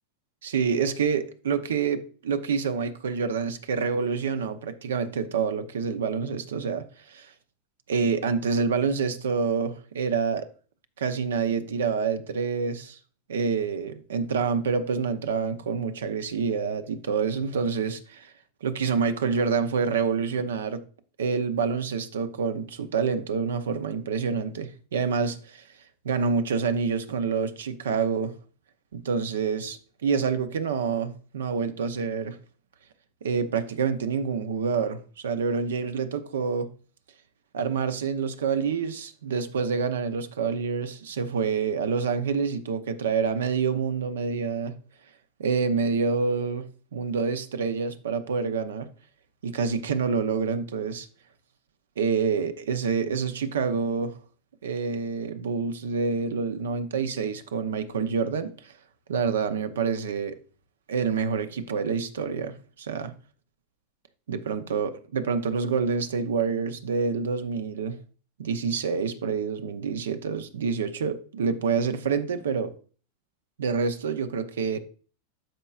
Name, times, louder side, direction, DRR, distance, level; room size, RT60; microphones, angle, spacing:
voice 1, 0.4-7.3 7.9-10.5 11.0-13.0 13.3-18.3 18.6-20.8 21.2-25.6 26.0-28.3 28.9-32.4 33.2-36.7 37.5-44.8 45.4-48.9 49.4-51.1 52.0-54.2 54.6-58.7 59.1-60.4 60.9-63.1 64.3-68.0 68.4-72.7 73.6-74.8, right 5 dB, 90° right, 0.7 m, -27 dB
13.0 x 4.4 x 2.4 m
hypercardioid pair, 120°, 0 cm